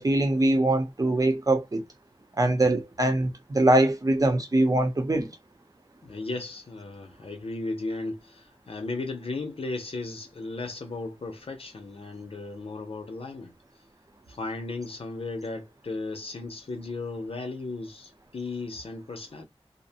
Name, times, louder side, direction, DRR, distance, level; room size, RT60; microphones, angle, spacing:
voice 1, 0.0-1.8 2.4-5.3, right 1 dB, 35° right, 0.7 m, -23 dB
voice 2, 6.0-13.5 14.3-19.4, left 3 dB, 60° left, 0.6 m, -35 dB
2.5 x 2.1 x 2.7 m
wide cardioid pair, 80°, 11 cm